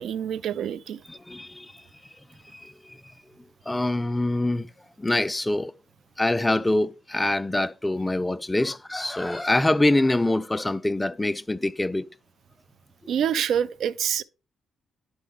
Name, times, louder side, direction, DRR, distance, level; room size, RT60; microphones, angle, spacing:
voice 1, 0.0-1.0 13.1-14.2, right 9 dB, 75° right, 0.4 m, -26 dB
voice 2, 1.1-1.7 2.5-3.0 3.7-4.7 5.0-5.7 6.2-12.1, left 1 dB, 10° left, 0.3 m, -25 dB
11.0 x 4.6 x 3.5 m
cardioid pair, 115°, 0 cm